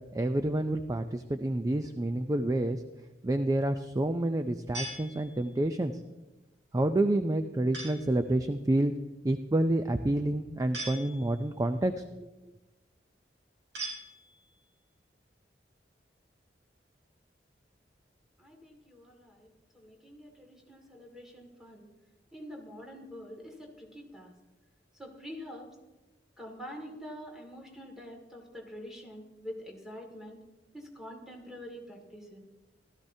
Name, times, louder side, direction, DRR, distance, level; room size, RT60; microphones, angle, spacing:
voice 1, 0.1-2.8 3.2-5.9 6.7-8.9 9.2-12.3, right 1 dB, 20° right, 8 dB, 0.4 m, -28 dB
sound 1, 4.7-5.7 7.7-8.2 10.7-11.6 13.7-14.6, right 1 dB, 80° right, 4.8 m, -41 dB
voice 2, 18.4-19.5 19.7-21.9 22.3-24.3 25.0-25.7 26.4-30.4 30.7-32.4, equal, 5° right, 0 dB, 2.0 m, -46 dB
16.0 x 13.0 x 2.7 m, 1.1 s
head